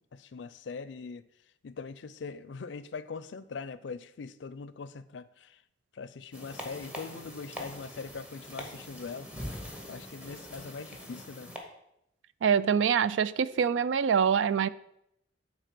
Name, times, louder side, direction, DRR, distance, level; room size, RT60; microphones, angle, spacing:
voice 1, 0.1-1.2 1.6-5.6 5.9-9.3 9.9-11.5, left 4 dB, 70° left, 16 dB, 0.4 m, -42 dB
sound 1, 6.3-11.6, left 1 dB, 5° right, 1.2 m, -43 dB
voice 2, 12.4-14.7, right 7 dB, 80° right, 17 dB, 0.3 m, -25 dB
9.3 x 4.2 x 6.0 m, 0.79 s
head